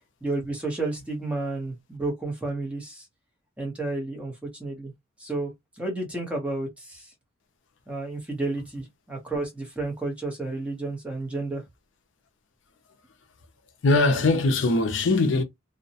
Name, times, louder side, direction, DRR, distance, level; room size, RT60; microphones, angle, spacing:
voice 1, 0.2-3.1 3.6-4.9 5.2-5.5 5.8-7.1 7.9-11.6, right 2 dB, 5° right, 0.8 m, -31 dB
voice 2, 13.8-15.4, left 2 dB, 60° left, 0.5 m, -21 dB
2.7 x 2.1 x 2.7 m
head